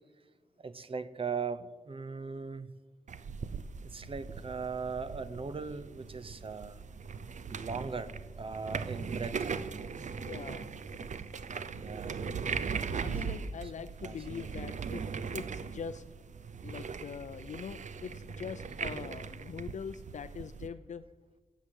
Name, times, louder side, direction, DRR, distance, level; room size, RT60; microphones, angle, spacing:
voice 1, 0.6-2.7 3.8-6.8 7.4-9.4 11.8-12.3 13.1-13.2 13.8-14.7 15.2-15.3, right 5 dB, 50° right, 12 dB, 0.8 m, -39 dB
sound 1, 3.1-20.7, right 5 dB, 85° right, 0.7 m, -39 dB
voice 2, 10.2-10.7 12.7-15.1 15.3-16.0 16.6-21.0, left 7 dB, 85° left, 9 dB, 0.5 m, -43 dB
16.5 x 8.2 x 8.2 m, 1.3 s
wide cardioid pair, 135°, 12 cm